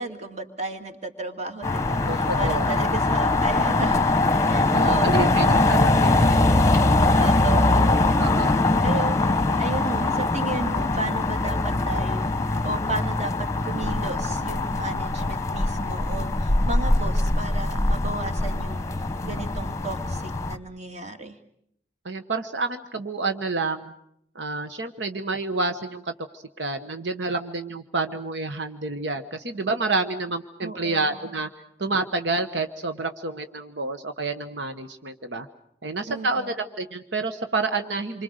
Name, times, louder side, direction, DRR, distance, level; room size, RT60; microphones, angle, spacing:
voice 1, 0.0-4.2 4.5-5.5 7.2-8.2 8.8-9.2 9.6-12.3 12.6-21.4 30.6-31.1 36.1-36.5, right 2 dB, 40° right, 6 dB, 2.3 m, -34 dB
sound 1, 1.6-20.6, left 2 dB, 15° left, 1.1 m, -22 dB
voice 2, 2.1-2.7 4.7-6.4 7.2-7.4 8.2-8.5 22.0-23.9 24.3-31.5 31.8-35.5 35.8-38.2, right 3 dB, 75° right, 7 dB, 1.2 m, -29 dB
27.5 x 24.5 x 6.6 m, 0.72 s
head